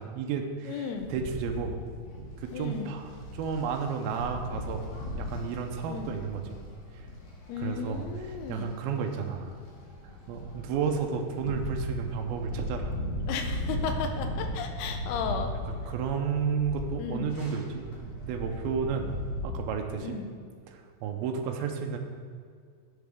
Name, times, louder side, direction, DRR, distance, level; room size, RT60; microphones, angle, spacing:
voice 1, 0.0-1.8 2.2-4.8 5.2-6.6 7.6-9.6 10.0-12.9 14.6-14.8 15.7-19.1 19.4-20.2 20.7-22.0, right 6 dB, 80° right, 3 dB, 2.4 m, -32 dB
voice 2, 0.7-1.1 2.5-3.0 5.8-6.2 7.5-8.8 13.3-15.5 17.0-17.4 20.0-20.3, left 5 dB, 85° left, 5 dB, 2.6 m, -35 dB
sound 1, 0.9-19.4, left 1 dB, 65° left, 3.2 m, -37 dB
10.5 x 7.3 x 3.5 m, 2.1 s
omnidirectional pair, 4.7 m